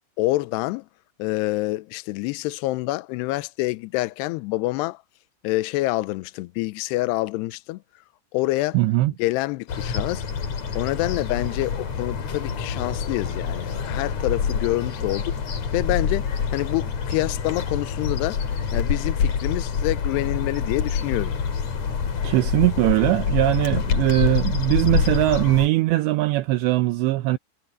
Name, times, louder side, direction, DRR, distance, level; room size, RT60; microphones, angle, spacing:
voice 1, 0.2-0.9 1.2-5.0 5.4-7.8 8.3-8.8 9.2-10.2 10.7-15.3 15.7-18.4 18.7-21.4, left 19 dB, 85° left, 2.4 m, -27 dB
voice 2, 8.7-9.1 22.2-27.4, right 17 dB, 80° right, 2.7 m, -20 dB
sound 1, 9.7-25.7, left 6 dB, 45° left, 3.0 m, -26 dB
omnidirectional pair, 5.5 m